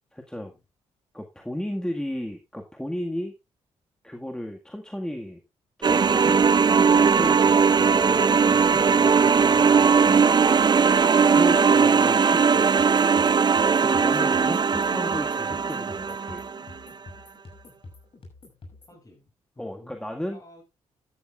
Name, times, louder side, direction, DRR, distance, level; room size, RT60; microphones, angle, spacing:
voice 1, 0.1-0.5 1.1-3.3 4.0-5.4 5.8-10.3 11.3-12.7 13.8-16.4 19.6-20.4, left 1 dB, 5° left, 1.8 m, -34 dB
sound 1, 5.8-16.6, right 5 dB, 35° right, 0.5 m, -19 dB
sound 2, 12.8-19.0, left 2 dB, 50° left, 6.1 m, -47 dB
voice 2, 18.9-19.3 19.5-20.0 20.3-20.6, left 1 dB, 30° left, 7.7 m, -52 dB
13.5 x 12.5 x 2.4 m
supercardioid pair, 55°, 12 cm